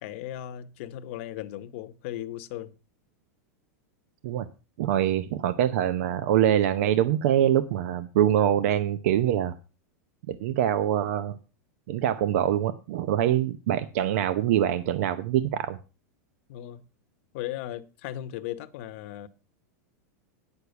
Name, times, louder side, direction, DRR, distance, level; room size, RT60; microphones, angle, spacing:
voice 1, 0.0-2.7 13.1-13.3 16.5-16.9 17.3-19.3, left 12 dB, 50° left, 1.0 m, -37 dB
voice 2, 4.8-9.5 10.3-11.4 11.9-15.8, right 11 dB, 60° right, 0.8 m, -24 dB
9.8 x 6.6 x 6.8 m
supercardioid pair, 155°, 9 cm